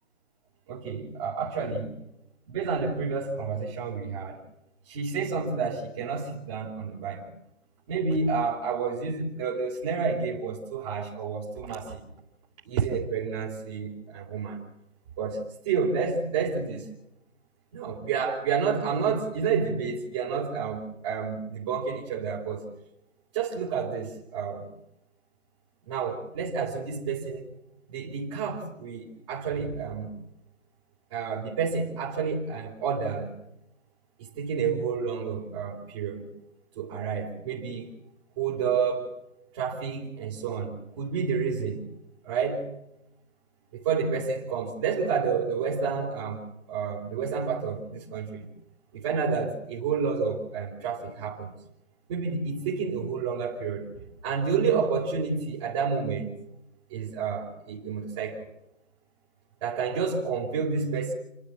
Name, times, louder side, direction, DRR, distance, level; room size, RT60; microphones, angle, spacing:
voice 1, 0.7-1.9 2.5-4.4 4.9-7.3 7.9-12.1 12.7-14.6 15.2-16.9 17.7-22.6 23.3-24.7 25.9-27.4 27.9-30.1 31.1-33.3 34.2-36.3 36.8-37.9 38.4-39.1 39.5-41.8 42.2-42.7 43.7-46.4 46.7-48.5 48.9-51.5 52.1-53.9 54.2-56.3 56.9-58.4 59.6-61.1, right 5 dB, 25° right, -4 dB, 3.5 m, -29 dB
30.0 x 12.0 x 7.5 m, 0.89 s
hypercardioid pair, 160°, 38 cm